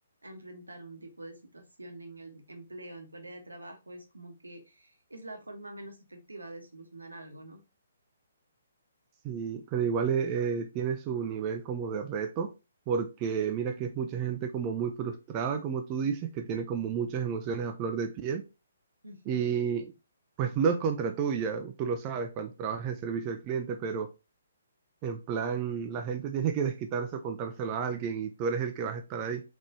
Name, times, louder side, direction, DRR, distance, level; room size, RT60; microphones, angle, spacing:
voice 1, 0.2-7.6 19.0-19.5, right 1 dB, 85° right, 3 dB, 1.0 m, -46 dB
voice 2, 9.2-12.5 12.9-18.4 19.3-19.9 20.4-24.1 25.0-29.4, right 6 dB, 30° right, 6 dB, 0.4 m, -31 dB
3.6 x 3.0 x 2.7 m, 0.28 s
figure-of-eight pair, 135°, 0 cm